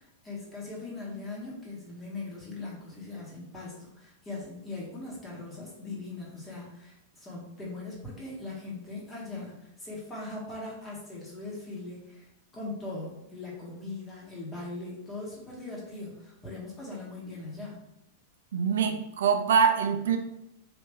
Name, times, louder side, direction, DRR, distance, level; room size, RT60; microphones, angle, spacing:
voice 1, 0.0-17.8, left 2 dB, 15° left, -4 dB, 1.5 m, -40 dB
voice 2, 18.5-20.2, right 6 dB, 80° right, 6 dB, 0.4 m, -24 dB
3.4 x 2.8 x 3.1 m, 0.84 s
hypercardioid pair, 115°, 0 cm